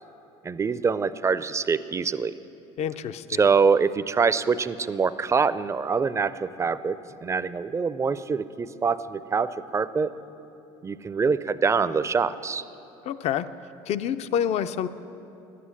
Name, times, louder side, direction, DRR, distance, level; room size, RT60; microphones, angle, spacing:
voice 1, 0.4-2.3 3.4-10.1 10.8-12.6, right 5 dB, 20° right, 15 dB, 0.4 m, -24 dB
voice 2, 2.8-3.6 13.0-13.5 13.9-14.9, left 9 dB, 55° left, 13 dB, 0.5 m, -28 dB
11.0 x 8.5 x 7.3 m, 2.9 s
supercardioid pair, 80°, 13 cm